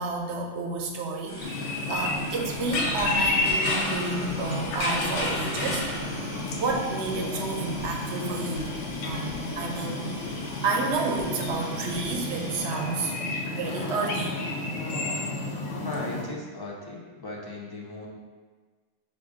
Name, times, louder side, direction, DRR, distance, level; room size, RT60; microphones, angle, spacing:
voice 1, 0.0-5.9 6.6-8.7 9.0-10.1 10.6-13.1 13.5-14.3, right 3 dB, 70° right, 1 dB, 0.8 m, -30 dB
sound 1, 1.3-12.6, equal, 50° left, 1.4 m, -41 dB
sound 2, 1.4-16.2, left 2 dB, 90° left, 1.0 m, -31 dB
sound 3, 2.6-6.5, left 2 dB, 65° left, 0.9 m, -33 dB
voice 2, 15.8-18.1, left 2 dB, 25° left, -3 dB, 0.5 m, -37 dB
5.0 x 2.5 x 3.6 m, 1.4 s
omnidirectional pair, 1.3 m